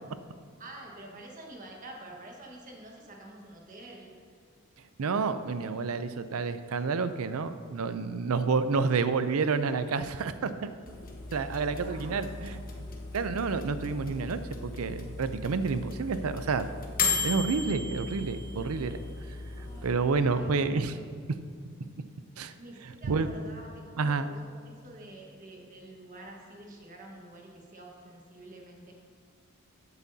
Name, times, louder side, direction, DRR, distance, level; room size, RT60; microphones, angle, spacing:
voice 1, 0.6-4.1 11.7-12.7 19.6-20.0 20.3-21.1 22.6-28.9, right 1 dB, 40° right, 0 dB, 1.4 m, -48 dB
voice 2, 5.0-10.7 11.3-12.8 13.1-16.7 17.2-19.0 19.8-21.0 22.4-22.5 23.1-23.3 24.0-24.3, right 4 dB, 80° right, 11 dB, 0.5 m, -29 dB
sound 1, 10.9-19.9, left 4 dB, 40° left, 1.1 m, -36 dB
14.5 x 8.1 x 2.8 m, 2.1 s
head